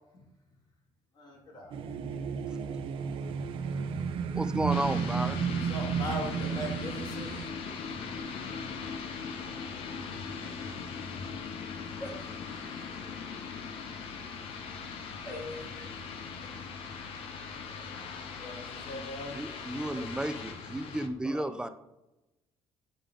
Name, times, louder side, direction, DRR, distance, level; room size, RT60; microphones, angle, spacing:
voice 1, 1.1-2.8 3.9-4.1 5.6-7.3 18.5-19.4, equal, 45° left, -2 dB, 2.2 m, -41 dB
sound 1, 1.7-7.5, right 7 dB, 60° right, 0.5 m, -33 dB
voice 2, 3.7-5.4 19.3-21.7, right 1 dB, 10° right, 10 dB, 0.3 m, -33 dB
sound 2, 4.7-21.1, left 5 dB, 65° left, 0.8 m, -40 dB
voice 3, 11.7-12.1 12.5-12.6 15.2-15.6 18.4-18.8 19.5-20.4 21.2-21.7, left 1 dB, 20° left, -2 dB, 1.6 m, -44 dB
8.9 x 3.4 x 3.8 m, 0.96 s
cardioid pair, 165°, 10 cm